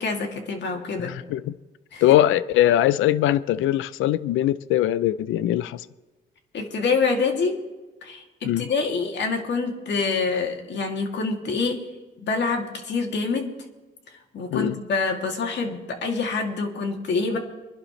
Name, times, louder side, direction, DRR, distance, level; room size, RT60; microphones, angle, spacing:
voice 1, 0.0-1.1 1.9-2.0 6.5-7.6 8.0-11.9 12.2-13.5 14.3-17.4, left 4 dB, 65° left, 2.6 m, -26 dB
voice 2, 1.0-1.5 2.0-5.9 8.4-8.7 14.5-14.8, left 13 dB, 85° left, 0.5 m, -21 dB
24.0 x 11.5 x 3.2 m
cardioid pair, 90°, 20 cm